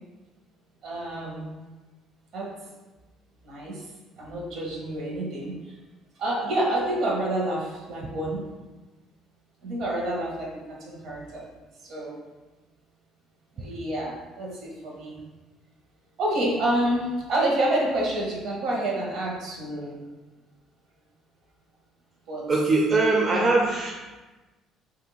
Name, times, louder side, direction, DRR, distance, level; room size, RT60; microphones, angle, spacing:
voice 1, 0.8-1.5 2.3-2.5 3.4-3.8 4.2-5.7 6.2-8.4 9.6-11.5 11.8-12.2 13.6-15.2 16.2-20.0 22.3-22.5 23.3-23.5, right 1 dB, 70° right, -3 dB, 1.0 m, -28 dB
voice 2, 22.5-24.2, right 3 dB, 35° right, -2 dB, 0.4 m, -22 dB
3.3 x 2.6 x 3.0 m, 1.2 s
cardioid pair, 110°, 0 cm